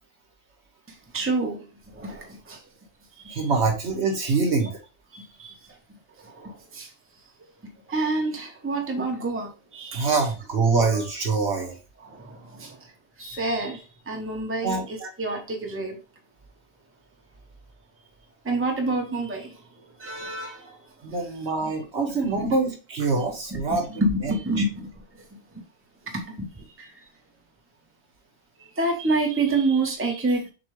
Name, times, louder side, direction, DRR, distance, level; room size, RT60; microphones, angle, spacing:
voice 1, 0.9-2.7 3.2-3.5 4.2-4.3 5.1-5.7 6.2-6.9 7.9-10.2 11.4-12.9 13.2-16.0 18.4-19.7 20.0-21.2 21.6-21.8 22.4-22.6 23.5-25.6 26.1-27.0 28.6-30.5, right 2 dB, 10° right, 0.9 m, -29 dB
voice 2, 3.3-4.8 9.9-11.7 14.6-14.8 21.0-23.9 24.2-24.3, right 4 dB, 65° right, 1.5 m, -24 dB
7.0 x 2.3 x 3.2 m
omnidirectional pair, 1.2 m